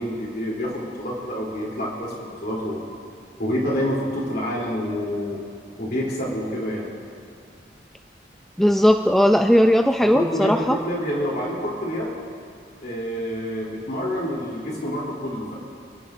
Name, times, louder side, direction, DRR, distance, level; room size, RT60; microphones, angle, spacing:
voice 1, 0.0-2.8 3.4-5.4 5.8-6.9 10.1-12.1 12.8-15.5, equal, 55° left, -4 dB, 3.3 m, -27 dB
voice 2, 8.6-10.8, equal, ahead, 5 dB, 0.3 m, -17 dB
27.0 x 11.0 x 2.6 m, 2.3 s
head